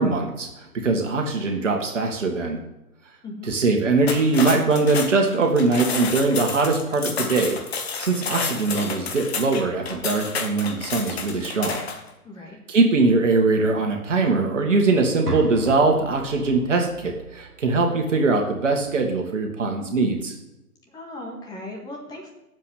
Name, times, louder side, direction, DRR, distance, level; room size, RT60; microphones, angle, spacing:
voice 1, 0.0-2.6 3.5-7.6 8.0-11.8 12.7-20.3, right 3 dB, 50° right, 2 dB, 2.1 m, -21 dB
sound 1, 4.0-12.1, left 5 dB, 40° left, 1.7 m, -30 dB
voice 2, 12.2-12.6 20.9-22.3, left 1 dB, 10° left, 0 dB, 1.8 m, -37 dB
sound 2, 15.3-19.2, right 3 dB, 85° right, 1.4 m, -37 dB
8.4 x 7.7 x 8.5 m, 0.97 s
figure-of-eight pair, 130°, 45 cm